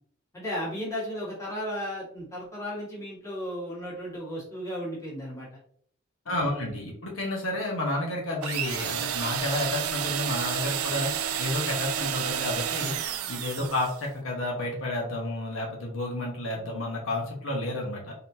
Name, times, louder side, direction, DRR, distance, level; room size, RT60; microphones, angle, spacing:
voice 1, 0.3-5.5 6.3-6.7 13.6-13.7, equal, 15° left, -6 dB, 1.8 m, -35 dB
voice 2, 6.2-11.1 11.4-13.0 13.3-18.1, left 1 dB, 70° left, -2 dB, 1.2 m, -31 dB
sound 1, 8.4-14.0, right 9 dB, 85° right, 0.4 m, -30 dB
3.9 x 3.9 x 2.7 m, 0.63 s
head